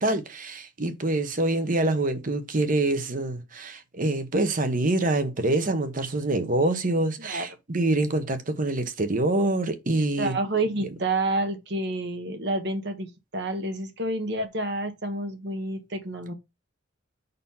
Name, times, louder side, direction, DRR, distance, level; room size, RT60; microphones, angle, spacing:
voice 1, 0.0-10.4, right 2 dB, 45° right, 1.0 m, -25 dB
voice 2, 10.2-16.3, right 2 dB, 60° right, 1.4 m, -29 dB
5.7 x 4.1 x 5.5 m
head